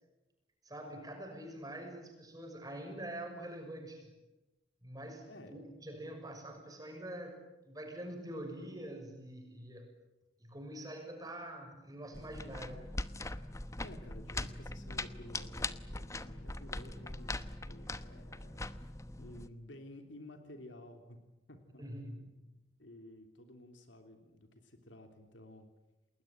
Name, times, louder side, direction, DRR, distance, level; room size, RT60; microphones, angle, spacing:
voice 1, 0.6-4.2 4.8-9.9 10.4-12.9 21.8-22.5, right 1 dB, 20° right, 3 dB, 6.5 m, -45 dB
sound 1, 12.1-19.5, left 2 dB, 15° left, 0.9 m, -41 dB
voice 2, 13.8-18.9 19.2-21.2 21.5-21.8 22.2-22.3 22.8-25.7, left 1 dB, 75° left, 5 dB, 3.2 m, -53 dB
29.5 x 20.5 x 9.0 m, 0.99 s
head